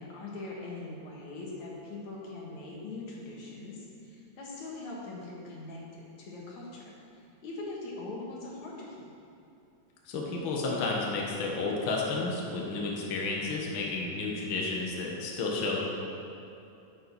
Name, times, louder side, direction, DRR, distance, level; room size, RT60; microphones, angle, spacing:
voice 1, 0.0-6.8 7.4-9.0, left 2 dB, 80° left, -4 dB, 3.1 m, -41 dB
voice 2, 10.1-15.8, left 3 dB, 50° left, -2 dB, 1.9 m, -31 dB
10.5 x 6.7 x 7.1 m, 2.7 s
omnidirectional pair, 3.3 m